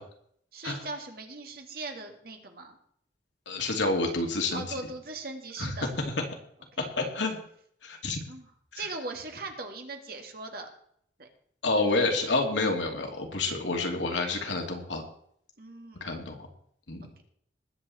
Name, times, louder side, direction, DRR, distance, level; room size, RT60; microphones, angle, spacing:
voice 1, 0.5-2.8 4.5-5.9 8.3-8.5 8.7-10.7 11.2-11.3 15.6-16.1, right 3 dB, 55° right, 4 dB, 2.2 m, -39 dB
voice 2, 3.5-4.7 5.6-5.7 6.8-7.4 7.8-8.2 8.7-8.8 11.6-15.0 16.0-16.5 16.9-17.0, left 3 dB, 85° left, 2 dB, 2.7 m, -28 dB
20.5 x 8.0 x 4.3 m, 0.66 s
head